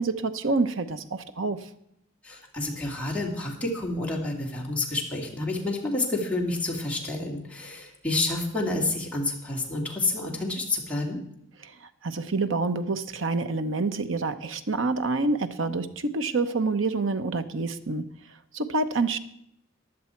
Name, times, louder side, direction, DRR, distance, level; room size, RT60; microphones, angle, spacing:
voice 1, 0.0-1.7 11.6-18.1 18.5-19.2, right 3 dB, 75° right, 1.0 m, -27 dB
voice 2, 2.2-11.2, left 2 dB, 5° left, 2.9 m, -29 dB
16.0 x 11.0 x 4.5 m
head